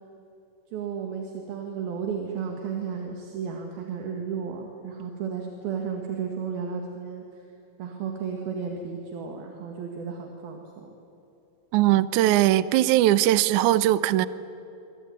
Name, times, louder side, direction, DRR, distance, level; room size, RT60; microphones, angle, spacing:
voice 1, 0.7-7.2 7.8-11.0, right 6 dB, 70° right, 2 dB, 3.8 m, -33 dB
voice 2, 11.7-14.3, right 14 dB, 85° right, 15 dB, 1.7 m, -20 dB
26.0 x 24.0 x 9.6 m, 2.9 s
omnidirectional pair, 4.6 m